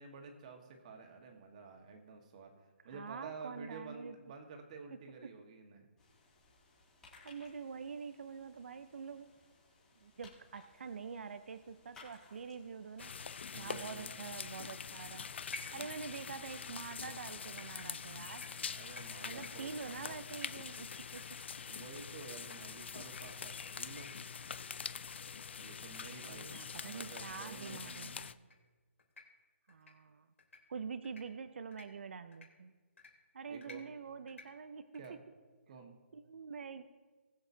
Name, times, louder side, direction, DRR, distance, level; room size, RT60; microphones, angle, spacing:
voice 1, 0.0-2.5 2.8-5.9 13.5-14.1 18.5-19.7 20.0-20.1 21.6-24.1 25.6-28.1 33.5-33.8 35.0-35.2 35.7-35.9, right 4 dB, 30° right, 4 dB, 1.5 m, -51 dB
voice 2, 2.9-4.1 7.2-9.3 10.0-13.1 13.6-15.3 15.7-18.5 19.2-21.2 26.2-28.3 29.7-30.3 30.7-32.7 33.3-35.2 36.1-36.8, right 5 dB, 60° right, 10 dB, 0.6 m, -46 dB
sound 1, 6.0-13.6, left 3 dB, 10° left, 2.5 m, -63 dB
sound 2, 13.0-28.3, left 6 dB, 55° left, 0.5 m, -45 dB
sound 3, 15.5-16.3 16.8-22.9 23.2-23.3 23.6-23.7 24.1-24.2 24.5-24.6 25.0-25.1 25.4-25.5 26.0-26.1 27.1-27.2 27.7-27.9 28.3-28.6 29.0-29.2 29.7-29.9 30.4-30.6 31.0-31.2 31.7-31.8 32.3-32.5 33.0-33.1 33.6-33.8 34.3-34.5 34.9-35.1, left 3 dB, 75° left, 3.6 m, -52 dB
20.5 x 7.7 x 2.8 m, 1.4 s
hypercardioid pair, 170°, 7 cm